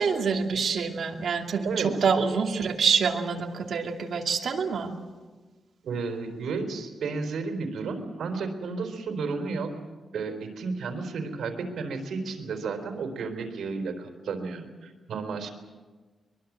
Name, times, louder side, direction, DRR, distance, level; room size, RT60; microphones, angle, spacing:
voice 1, 0.0-4.9, right 5 dB, 60° right, 2 dB, 2.6 m, -26 dB
voice 2, 1.6-2.0 5.8-9.7 10.1-15.5, right 4 dB, 80° right, 5 dB, 4.1 m, -32 dB
23.0 x 23.0 x 7.5 m, 1.3 s
wide cardioid pair, 150°, 0 cm